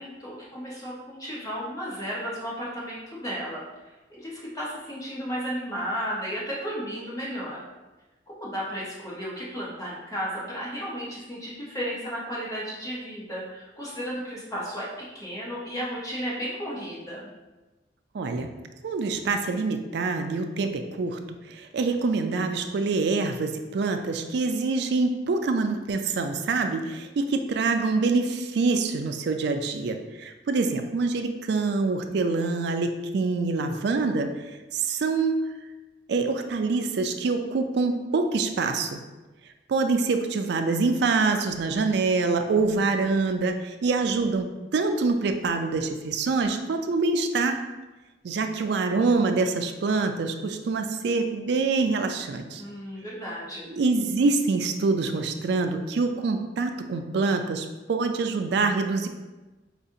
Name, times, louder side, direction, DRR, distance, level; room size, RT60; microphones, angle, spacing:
voice 1, 0.0-3.6 4.1-7.6 8.4-17.3 52.6-53.7, equal, 20° left, -6 dB, 1.0 m, -34 dB
voice 2, 18.1-18.5 18.8-21.2 21.5-34.3 34.7-35.5 36.1-39.0 39.7-47.6 48.2-52.6 53.7-59.1, right 3 dB, 65° right, 6 dB, 0.3 m, -25 dB
5.0 x 2.5 x 2.7 m, 1.2 s
head